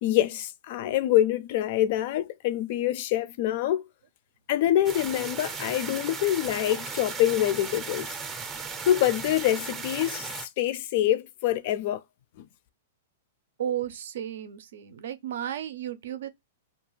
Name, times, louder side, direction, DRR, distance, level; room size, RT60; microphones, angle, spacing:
voice 1, 0.0-3.8 4.5-8.2 8.9-12.0 12.4-12.5, left 12 dB, 50° left, 0.3 m, -25 dB
sound 1, 4.9-10.5, right 5 dB, 20° right, 0.5 m, -36 dB
voice 2, 13.6-16.3, right 10 dB, 70° right, 0.5 m, -33 dB
2.4 x 2.3 x 3.1 m
hypercardioid pair, 150°, 0 cm